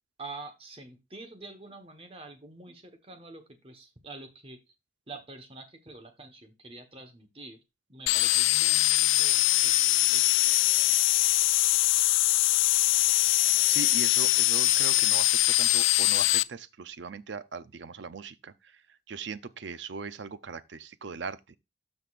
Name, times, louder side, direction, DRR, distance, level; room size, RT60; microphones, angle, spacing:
voice 1, 0.2-4.6 5.1-7.6 7.9-9.8 10.1-10.3, right 3 dB, 30° right, 1.2 m, -46 dB
sound 1, 8.1-16.4, left 18 dB, 85° left, 0.3 m, -23 dB
voice 2, 13.7-21.6, right 5 dB, 65° right, 0.5 m, -40 dB
12.5 x 5.3 x 2.5 m
head